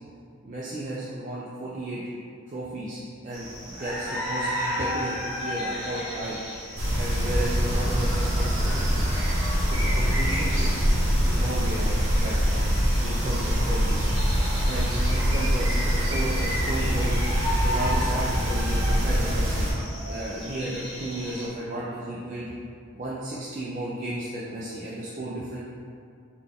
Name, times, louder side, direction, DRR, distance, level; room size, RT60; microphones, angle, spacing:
voice 1, 0.4-2.0 2.5-6.4 7.0-9.1 9.7-11.9 12.2-12.6 13.0-14.1 14.7-17.2 17.6-19.7 20.1-22.5 22.9-25.6, right 1 dB, 35° right, -7 dB, 0.3 m, -34 dB
sound 1, 3.3-21.5, equal, ahead, 1.1 m, -35 dB
sound 2, 6.8-19.7, equal, 60° right, 0.8 m, -24 dB
3.9 x 2.2 x 3.4 m, 2.3 s
head